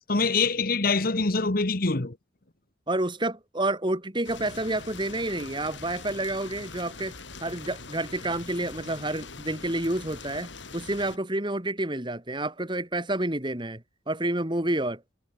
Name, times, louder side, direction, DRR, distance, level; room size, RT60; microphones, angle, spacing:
voice 1, 0.1-2.2, left 3 dB, 50° left, 1.3 m, -24 dB
voice 2, 2.9-7.1 7.4-15.0, right 1 dB, 25° right, 2.6 m, -29 dB
sound 1, 4.2-11.2, left 4 dB, 75° left, 4.7 m, -43 dB
head